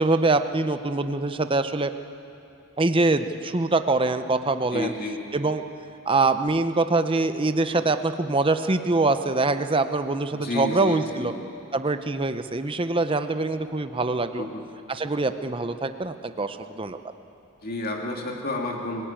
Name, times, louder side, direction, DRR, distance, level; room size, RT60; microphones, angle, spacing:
voice 1, 0.0-1.9 2.8-4.9 5.3-5.6 6.1-11.3 11.7-14.5 14.9-17.0, right 3 dB, 25° right, 9 dB, 0.7 m, -24 dB
voice 2, 4.7-5.2 10.3-11.3 14.4-14.6 17.6-19.0, left 2 dB, 45° left, 1 dB, 2.5 m, -30 dB
27.0 x 17.5 x 9.0 m, 2.8 s
head